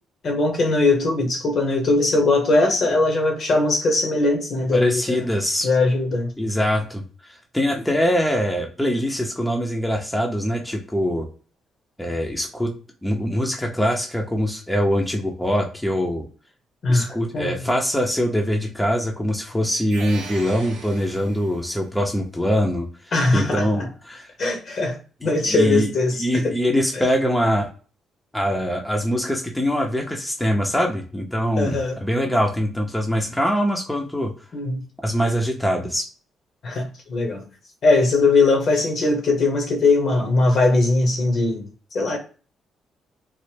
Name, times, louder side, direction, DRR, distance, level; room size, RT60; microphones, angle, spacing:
voice 1, 0.2-5.2 5.6-6.3 16.8-17.7 23.1-23.9 24.4-26.4 26.9-27.0 31.6-32.0 34.5-34.8 36.6-37.5 37.8-41.7 41.9-42.2, left 2 dB, 55° left, 0.9 m, -20 dB
voice 2, 4.7-5.7 6.4-7.0 7.5-11.3 12.0-12.7 13.0-16.3 16.9-22.9 23.3-24.3 25.2-25.9 26.2-27.7 28.3-34.3 35.0-36.1, equal, 5° left, 0.6 m, -23 dB
sound 1, 19.9-21.8, right 4 dB, 90° right, 0.7 m, -39 dB
3.1 x 2.0 x 3.3 m
cardioid pair, 90°, 0 cm